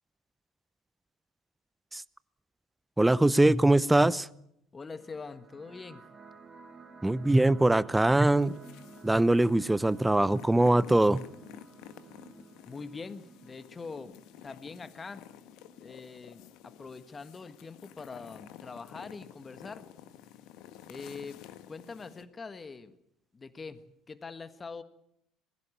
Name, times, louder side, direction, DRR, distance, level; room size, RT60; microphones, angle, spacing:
voice 1, 3.0-4.3 7.0-8.6 9.0-11.2, right 2 dB, 10° right, 0.7 m, -22 dB
voice 2, 4.7-6.0 12.6-14.2 14.4-15.2 15.8-19.9 20.9-22.9 23.3-23.8 24.1-24.8, left 4 dB, 25° left, 1.6 m, -43 dB
sound 1, 4.9-15.9, right 4 dB, 30° right, 3.8 m, -53 dB
sound 2, 8.0-22.2, left 11 dB, 65° left, 1.5 m, -51 dB
21.5 x 16.0 x 9.1 m
hypercardioid pair, 60°, 0 cm